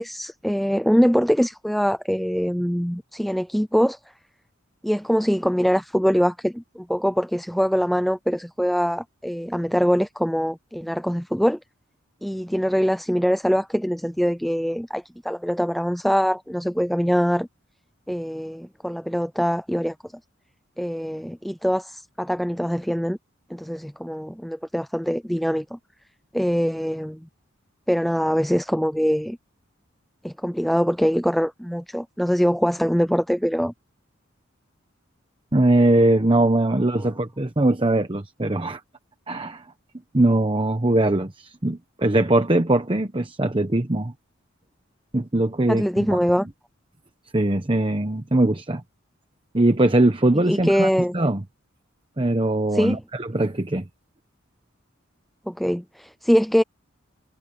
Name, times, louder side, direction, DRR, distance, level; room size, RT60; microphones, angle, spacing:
voice 1, 0.0-4.0 4.8-11.6 12.2-17.5 18.1-19.9 20.8-23.2 23.5-25.8 26.3-27.3 27.9-29.4 30.2-33.7 45.7-46.5 50.5-51.1 52.7-53.0 55.5-56.6, equal, ahead, 0.4 m, -23 dB
voice 2, 35.5-38.8 39.3-39.6 40.1-44.1 45.1-46.1 47.3-48.8 49.5-50.9 51.1-51.4 52.2-53.8, right 1 dB, 25° right, 1.0 m, -21 dB
head